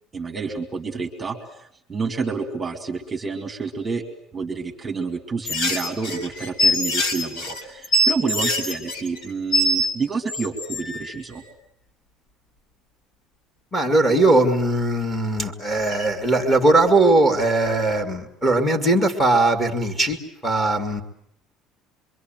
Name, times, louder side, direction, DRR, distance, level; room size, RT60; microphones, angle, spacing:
voice 1, 0.1-4.0 4.3-11.4, right 4 dB, 15° right, 2 dB, 2.3 m, -29 dB
sound 1, 5.5-9.9 10.3-11.1 15.8-16.1, equal, 60° left, 4.3 m, -23 dB
voice 2, 13.7-20.2 20.4-21.0, right 2 dB, 5° left, 3 dB, 2.5 m, -19 dB
26.5 x 23.5 x 9.2 m, 0.72 s
cardioid pair, 175°, 0 cm